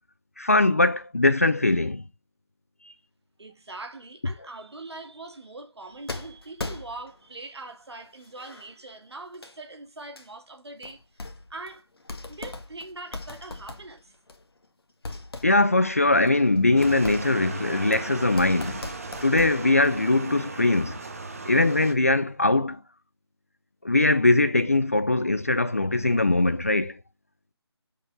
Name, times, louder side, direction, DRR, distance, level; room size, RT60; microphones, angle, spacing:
voice 1, 0.4-2.0 15.4-18.9 19.2-21.0 21.5-22.8 23.8-27.0, left 2 dB, 35° left, 0.4 m, -21 dB
voice 2, 3.4-11.9 12.3-14.1, right 2 dB, 70° right, 2.2 m, -42 dB
sound 1, 6.1-7.3 8.0-8.7 9.3-9.5 10.2-10.3 10.8-11.7 12.0-14.6 15.0-20.0, left 2 dB, 60° left, 1.6 m, -40 dB
sound 2, 16.8-21.9, right 3 dB, 30° right, 0.9 m, -37 dB
5.6 x 5.4 x 5.9 m
figure-of-eight pair, 175°, 14 cm